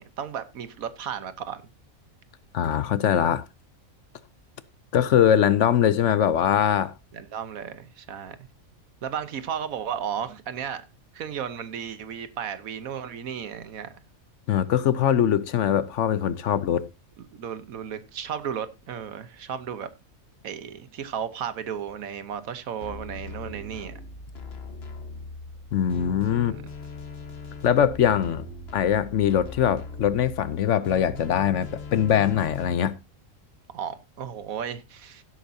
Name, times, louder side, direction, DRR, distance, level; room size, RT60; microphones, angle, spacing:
voice 1, 0.0-1.6 7.1-8.5 9.0-10.8 11.1-14.0 17.2-19.9 20.4-23.9 26.5-26.6 33.7-35.2, right 8 dB, 85° right, 1.4 m, -34 dB
voice 2, 2.5-3.4 4.9-6.9 14.5-16.9 25.7-26.5 27.6-28.4 28.7-33.0, left 9 dB, 65° left, 1.0 m, -22 dB
sound 1, 22.8-32.7, left 4 dB, 50° left, 1.5 m, -40 dB
16.0 x 8.4 x 2.7 m
omnidirectional pair, 1.4 m